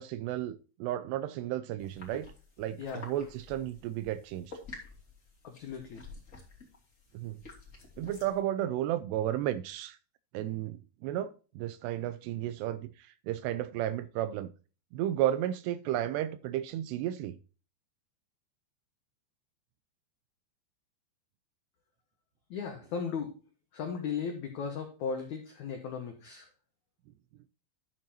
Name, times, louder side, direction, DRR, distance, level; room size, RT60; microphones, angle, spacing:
voice 1, 0.0-2.3 2.6-4.5 7.1-7.4 8.0-10.0 10.3-14.5 14.9-17.4, right 12 dB, 85° right, 2.4 m, -33 dB
sound 1, 1.8-8.4, left 3 dB, 25° left, 2.2 m, -50 dB
voice 2, 5.4-6.0 22.5-23.3 23.7-26.5, left 6 dB, 80° left, 1.7 m, -36 dB
12.0 x 7.5 x 2.9 m
omnidirectional pair, 5.2 m